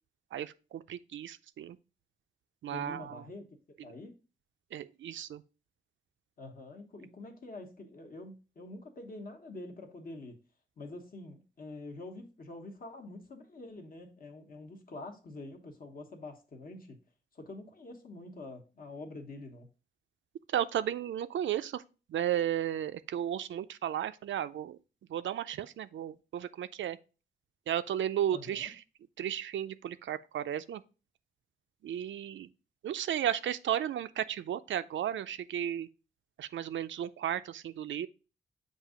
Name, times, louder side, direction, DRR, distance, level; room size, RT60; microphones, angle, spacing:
voice 1, 0.3-1.8 2.6-3.3 4.7-5.4 20.5-21.8 22.1-24.8 25.1-27.0 27.7-28.8 29.2-30.8 31.8-32.5 32.8-35.9 36.4-38.1, right 10 dB, 80° right, 0.4 m, -34 dB
voice 2, 2.7-3.5 3.8-4.1 6.4-10.4 10.8-17.0 17.3-19.7 28.3-28.7, left 2 dB, 50° left, 1.1 m, -46 dB
7.4 x 2.7 x 5.0 m
wide cardioid pair, 140°, 19 cm